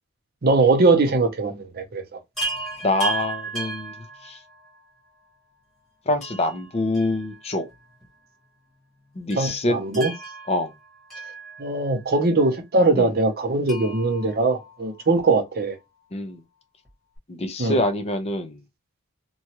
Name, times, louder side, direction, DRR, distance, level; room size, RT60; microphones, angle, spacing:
voice 1, 0.4-2.0 9.4-10.1 11.6-15.8 17.6-17.8, right 3 dB, 45° right, 0.6 m, -21 dB
Chime, 2.4-4.8 6.2-7.7 8.0-8.1 9.3-12.0 13.7-15.3 16.9-17.0 17.2-17.3, right 3 dB, ahead, 1.2 m, -35 dB
voice 2, 2.8-4.0 4.2-4.4 6.1-7.7 9.2-9.8 10.5-10.7 13.0-13.1 15.1-15.2 16.1-16.4 17.3-18.6, left 2 dB, 25° left, 0.5 m, -25 dB
2.9 x 2.3 x 2.8 m
head